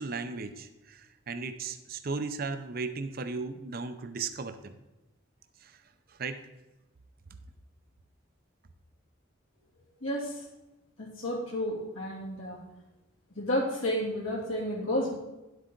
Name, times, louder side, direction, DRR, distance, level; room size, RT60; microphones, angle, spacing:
voice 1, 0.0-4.7 5.6-5.8 6.1-6.4, right 4 dB, 45° right, 9 dB, 0.6 m, -36 dB
voice 2, 10.0-10.4 11.0-12.6 13.3-15.1, left 1 dB, 80° left, -4 dB, 2.9 m, -31 dB
11.0 x 8.0 x 3.9 m, 1.0 s
head